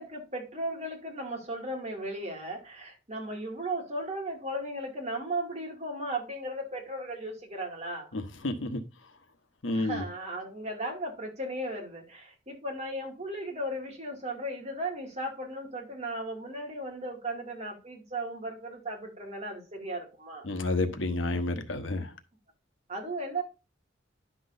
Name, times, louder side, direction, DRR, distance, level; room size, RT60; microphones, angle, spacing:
voice 1, 0.0-8.1 9.7-20.5 22.9-23.4, right 1 dB, 35° right, 2.3 m, -36 dB
voice 2, 8.4-8.8 9.6-10.0 20.5-22.1, left 2 dB, 85° left, 1.0 m, -29 dB
10.5 x 6.1 x 2.6 m
head